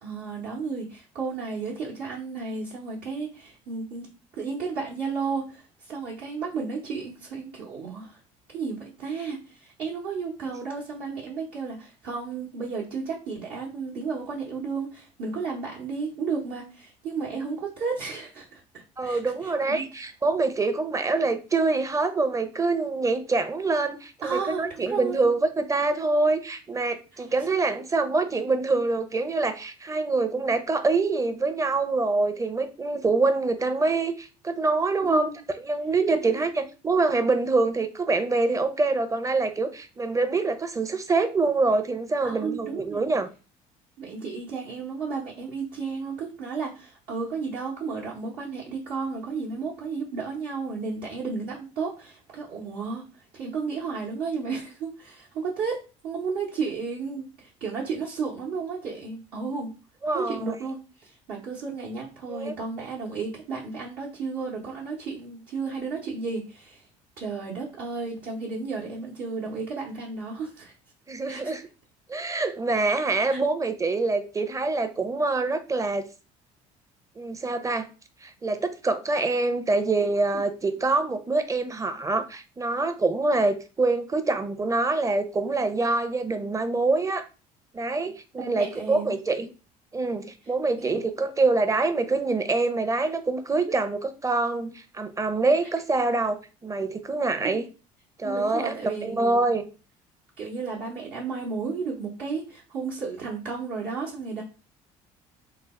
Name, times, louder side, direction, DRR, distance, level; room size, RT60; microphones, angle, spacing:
voice 1, 0.0-4.1 4.4-8.2 8.5-18.6 19.0-19.8 24.2-25.3 35.1-35.4 36.1-36.4 42.2-43.0 44.0-53.0 53.3-59.7 60.1-66.8 67.2-70.7 71.3-71.5 73.3-73.4 88.4-89.1 90.8-91.0 97.4-97.6 98.2-99.6 100.4-104.4, right 4 dB, 65° right, -5 dB, 1.0 m, -33 dB
voice 2, 19.0-35.3 35.6-43.3 60.0-60.6 62.3-62.5 71.1-71.7 72.1-76.0 77.2-77.9 78.2-87.2 87.7-89.5 89.9-97.7 98.2-99.7, right 3 dB, 20° right, 9 dB, 0.6 m, -25 dB
3.2 x 2.0 x 3.6 m, 0.33 s
hypercardioid pair, 70°, 17 cm